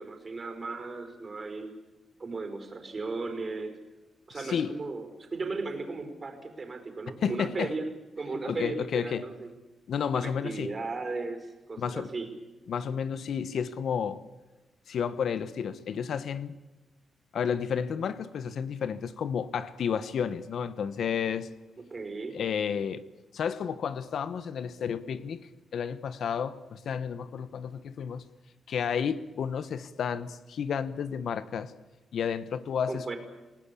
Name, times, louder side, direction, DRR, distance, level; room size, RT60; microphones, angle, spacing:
voice 1, 0.0-1.7 2.2-3.8 4.3-7.9 8.2-9.5 10.1-12.3 21.8-22.4 32.9-33.2, right 3 dB, 30° right, 5.3 m, -36 dB
voice 2, 7.2-7.7 8.4-9.3 9.9-10.7 11.8-12.1 12.7-14.2 14.9-16.5 17.3-21.5 22.3-23.0 23.3-28.2 28.7-31.7 32.1-33.1, left 7 dB, 70° left, 1.2 m, -31 dB
29.0 x 18.5 x 8.6 m
cardioid pair, 115°, 0 cm